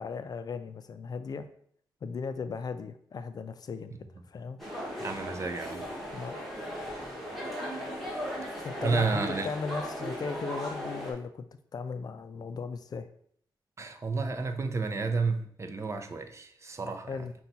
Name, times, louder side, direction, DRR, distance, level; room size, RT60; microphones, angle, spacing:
voice 1, 0.0-1.5 2.0-3.9 4.3-4.6 6.1-6.4 8.6-11.5 11.7-13.1 17.1-17.3, left 5 dB, 50° left, 10 dB, 0.4 m, -37 dB
sound 1, 4.6-11.1, equal, ahead, 1.4 m, -37 dB
voice 2, 5.0-5.8 8.8-9.5 13.8-17.2, right 4 dB, 35° right, 6 dB, 0.5 m, -31 dB
5.6 x 2.3 x 4.0 m, 0.62 s
cardioid pair, 85°, 8 cm